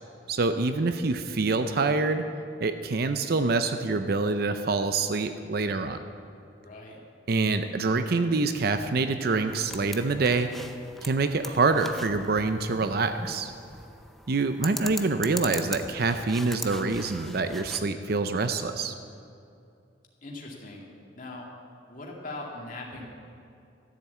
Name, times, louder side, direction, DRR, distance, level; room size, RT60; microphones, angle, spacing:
voice 1, 0.3-2.2 2.6-6.0 7.3-10.5 11.0-13.5 14.3-18.9, right 3 dB, 55° right, 9 dB, 0.6 m, -26 dB
voice 2, 6.6-7.0 20.2-20.9 21.1-21.5 21.9-23.1, left 2 dB, 45° left, -2 dB, 2.3 m, -40 dB
sound 1, 9.5-17.8, left 1 dB, ahead, 0.5 m, -41 dB
13.5 x 7.5 x 8.3 m, 2.5 s
head